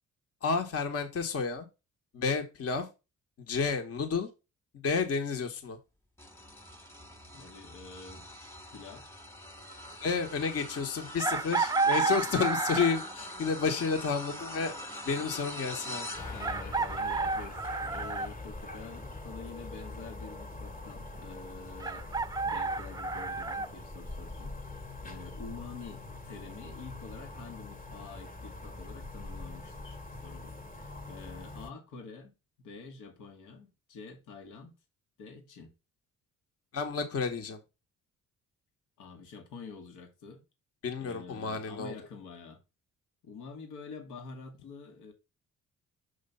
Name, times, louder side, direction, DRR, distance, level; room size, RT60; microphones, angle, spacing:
voice 1, 0.4-1.7 2.1-2.9 3.5-4.3 4.8-5.8 10.0-14.8 15.0-16.1 36.7-37.6 40.8-41.9, left 5 dB, 50° left, 1.2 m, -31 dB
sound 1, 6.2-21.7 22.2-22.5 23.7-23.8, left 1 dB, 10° left, 1.3 m, -45 dB
voice 2, 7.3-8.3 8.7-9.0 11.4-11.8 16.3-34.7 35.2-35.7 39.0-40.4 41.0-42.6 43.2-45.1, left 4 dB, 90° left, 1.6 m, -47 dB
Chicken rooster, 11.2-13.1 14.8-14.9 16.4-18.3 21.8-23.7, right 4 dB, 15° right, 0.5 m, -30 dB
sound 2, 16.1-31.7, left 2 dB, 25° left, 1.3 m, -43 dB
6.6 x 3.3 x 5.4 m
cardioid pair, 90°, 30 cm